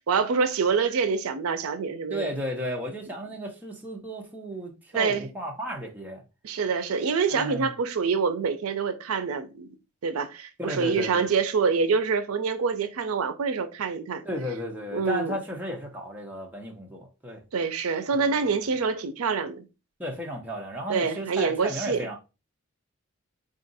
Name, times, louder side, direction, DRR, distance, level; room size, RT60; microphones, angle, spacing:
voice 1, 0.1-2.3 4.9-5.3 6.4-9.7 10.0-14.2 14.9-15.4 17.5-19.6 20.9-22.1, right 5 dB, 85° right, 0.5 m, -26 dB
voice 2, 2.1-6.2 7.3-7.7 10.6-11.2 14.2-17.4 18.1-18.7 20.0-22.2, equal, 10° right, 0.8 m, -34 dB
4.0 x 2.5 x 3.9 m
head